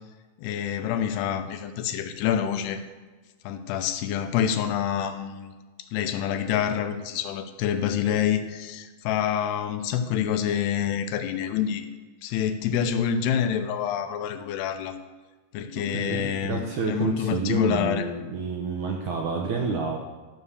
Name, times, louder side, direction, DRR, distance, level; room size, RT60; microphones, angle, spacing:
voice 1, 0.4-2.8 3.4-5.5 5.9-11.9 12.2-14.9 15.5-18.1, left 9 dB, 85° left, 8 dB, 2.9 m, -27 dB
voice 2, 15.8-20.0, right 4 dB, 70° right, 1 dB, 1.9 m, -29 dB
13.5 x 6.5 x 7.0 m, 1.3 s
omnidirectional pair, 4.7 m